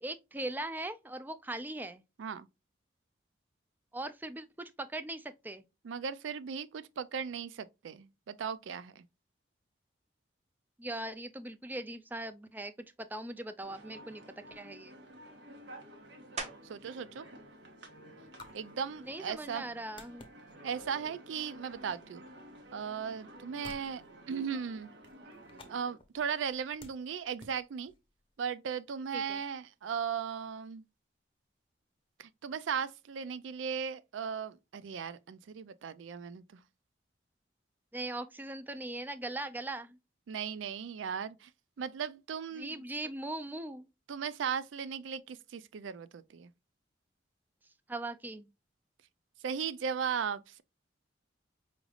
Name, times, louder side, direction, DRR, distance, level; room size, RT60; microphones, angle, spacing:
voice 1, 0.0-2.0 3.9-5.6 10.8-12.7 13.0-15.0 19.0-20.3 29.1-29.4 37.9-40.0 42.6-43.9 47.9-48.5, right 2 dB, 10° right, 0.3 m, -40 dB
voice 2, 5.8-9.0 16.6-17.3 18.5-19.7 20.6-22.2 22.7-24.0 24.3-24.9 25.7-27.9 28.4-30.8 32.2-36.6 40.3-41.5 41.8-42.8 44.1-46.5 49.4-50.6, right 7 dB, 85° right, 0.4 m, -37 dB
sound 1, 13.6-25.9, right 1 dB, 70° right, 1.2 m, -52 dB
sound 2, 16.4-17.0 17.5-21.9 22.5-27.6 27.9-33.6, right 3 dB, 35° right, 0.8 m, -52 dB
sound 3, 17.1-28.5, left 2 dB, 30° left, 0.7 m, -59 dB
5.0 x 3.2 x 2.3 m
head